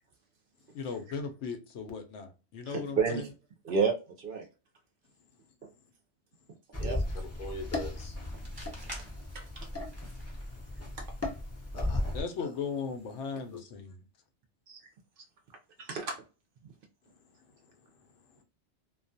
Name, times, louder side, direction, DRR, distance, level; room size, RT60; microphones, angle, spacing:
voice 1, 0.7-3.2 12.1-14.0, left 5 dB, 85° left, 0.9 m, -37 dB
voice 2, 2.7-3.3 3.6-4.5 5.6-5.7 6.8-7.0 9.0-9.1 9.3-9.7 14.7-14.8 15.8-16.2, right 5 dB, 60° right, 0.6 m, -31 dB
sound 1, 6.7-12.2, left 1 dB, 20° left, 0.4 m, -36 dB
sound 2, 7.2-13.6, equal, 20° right, 0.9 m, -53 dB
voice 3, 7.4-8.2 11.7-12.1 12.4-12.5 13.5-13.6 17.4-18.4, left 2 dB, 55° left, 0.8 m, -44 dB
2.3 x 2.3 x 2.5 m
omnidirectional pair, 1.2 m